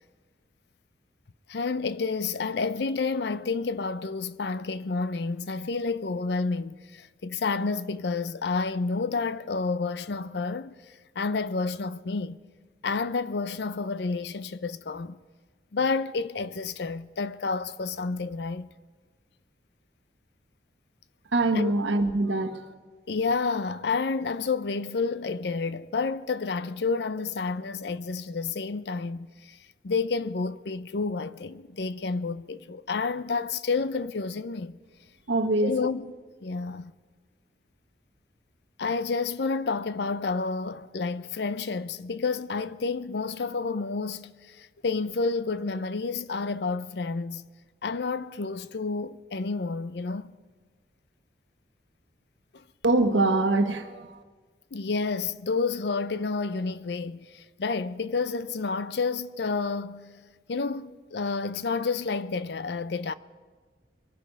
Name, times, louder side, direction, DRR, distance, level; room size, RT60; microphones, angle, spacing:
voice 1, 1.5-10.8 11.2-12.4 12.8-15.2 15.7-18.7 21.5-21.7 23.1-29.6 29.8-34.7 35.6-36.1 36.4-36.9 38.8-47.5 47.8-50.4 52.5-52.6 54.7-60.1 60.5-63.1, left 4 dB, 65° left, 0.6 m, -30 dB
voice 2, 21.3-22.5 35.3-35.7 52.8-54.2, right 2 dB, 85° right, 1.3 m, -23 dB
23.5 x 9.3 x 5.4 m
head